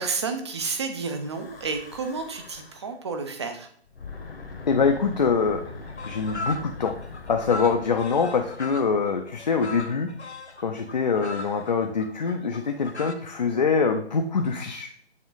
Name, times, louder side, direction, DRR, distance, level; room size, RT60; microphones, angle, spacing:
voice 1, 0.0-3.7, right 4 dB, 25° right, 6 dB, 0.6 m, -31 dB
Breathing / Wind, 1.0-3.0 3.8-9.2, left 4 dB, 60° left, 1.2 m, -42 dB
voice 2, 4.7-5.6 6.1-6.9 7.3-10.1 10.6-15.0, left 5 dB, 40° left, 4 dB, 0.6 m, -24 dB
sound 1, 5.7-13.1, left 2 dB, 85° left, 0.8 m, -38 dB
7.3 x 3.8 x 3.9 m, 0.63 s
figure-of-eight pair, 140°, 33 cm